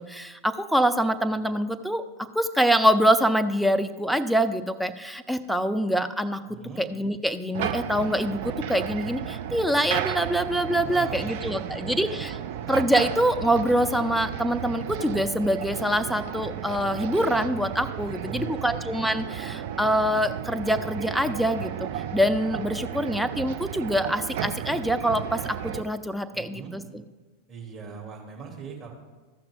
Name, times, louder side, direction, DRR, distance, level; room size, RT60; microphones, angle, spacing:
voice 1, 0.0-2.0 2.3-6.4 6.8-12.3 12.7-27.0, equal, ahead, 7 dB, 0.5 m, -25 dB
voice 2, 6.5-6.8 10.8-11.4 11.7-12.2 12.5-12.6 18.2-18.8 26.3-26.7 27.5-28.9, right 6 dB, 30° right, -2 dB, 2.5 m, -40 dB
sound 1, 7.5-25.8, right 10 dB, 50° right, 0.6 m, -33 dB
14.5 x 5.8 x 3.6 m, 1.3 s
figure-of-eight pair, 90°, 0 cm